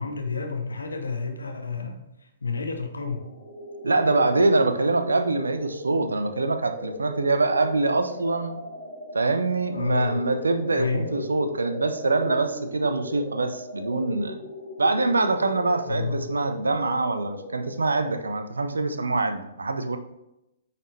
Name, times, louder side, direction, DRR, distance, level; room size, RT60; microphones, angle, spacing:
voice 1, 0.0-2.1 2.4-3.2 9.7-10.2 10.7-11.1 15.9-16.2, left 4 dB, 70° left, 4 dB, 1.1 m, -30 dB
sound 1, 3.1-18.3, left 2 dB, 15° right, 2.6 m, -38 dB
voice 2, 3.8-8.6 9.1-14.4 14.8-20.0, right 3 dB, 70° right, 9 dB, 0.6 m, -24 dB
9.0 x 4.2 x 3.3 m, 0.89 s
figure-of-eight pair, 115°, 0 cm